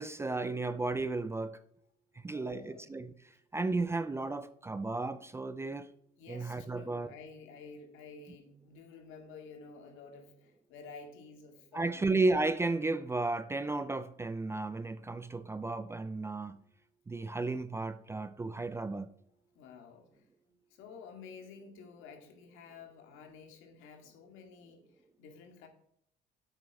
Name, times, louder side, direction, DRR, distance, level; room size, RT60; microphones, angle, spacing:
voice 1, 0.0-1.6 2.2-3.1 3.5-5.9 6.3-7.1 11.7-16.6 17.1-19.1, right 3 dB, 15° right, 0.4 m, -33 dB
voice 2, 2.1-2.8 6.2-12.1 19.5-20.3 20.7-25.7, left 5 dB, 80° left, 2.3 m, -51 dB
8.2 x 8.0 x 4.8 m
cardioid pair, 140°, 20 cm